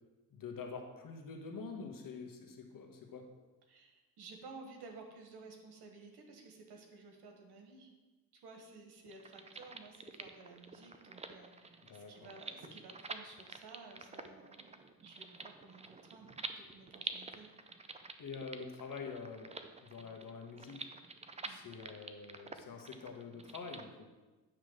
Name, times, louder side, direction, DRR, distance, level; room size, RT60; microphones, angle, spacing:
voice 1, 0.3-3.3 11.9-12.3 18.2-20.8 21.5-24.1, left 5 dB, 60° left, 3 dB, 1.2 m, -46 dB
voice 2, 3.7-7.9 8.3-14.7 15.0-17.5 21.4-21.6, right 3 dB, 85° right, 3 dB, 1.4 m, -54 dB
sound 1, 9.1-23.8, right 4 dB, 20° right, 0.4 m, -48 dB
9.0 x 3.1 x 6.4 m, 1.2 s
cardioid pair, 100°, 38 cm